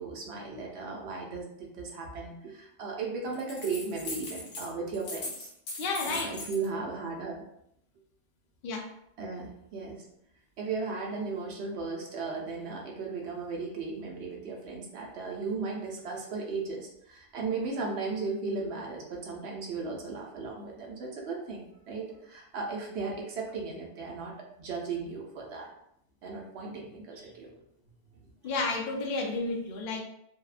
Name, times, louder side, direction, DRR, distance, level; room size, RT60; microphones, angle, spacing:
voice 1, 0.0-5.5 6.0-7.4 9.2-10.0 10.6-25.7 26.2-27.5, right 4 dB, 70° right, -1 dB, 0.8 m, -36 dB
sound 1, 3.3-4.7 4.9-6.7, left 2 dB, 85° left, 1.0 m, -39 dB
voice 2, 5.8-6.3 8.6-8.8 28.4-30.0, left 3 dB, 60° left, 1 dB, 0.6 m, -31 dB
2.6 x 2.1 x 2.4 m, 0.76 s
omnidirectional pair, 1.2 m